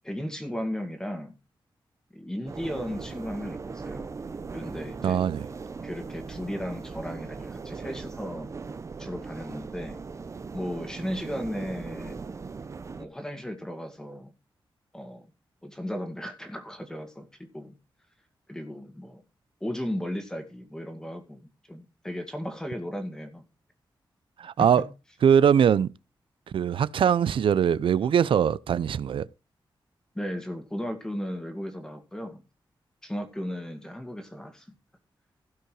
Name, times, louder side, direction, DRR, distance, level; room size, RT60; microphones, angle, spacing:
voice 1, 0.0-1.3 2.1-4.2 4.5-5.2 5.8-8.5 9.0-10.0 10.5-12.2 13.0-14.3 14.9-15.3 15.6-17.7 18.5-19.2 19.6-21.4 21.7-23.4 24.6-24.9 30.2-32.4 33.0-34.6, equal, 5° left, 2.0 m, -35 dB
sound 1, 2.5-13.1, right 4 dB, 35° right, 0.7 m, -39 dB
voice 2, 5.0-5.5 24.4-24.8 25.2-25.9 26.5-29.3, right 8 dB, 80° right, 0.5 m, -22 dB
16.5 x 5.6 x 4.7 m
wide cardioid pair, 165°, 9 cm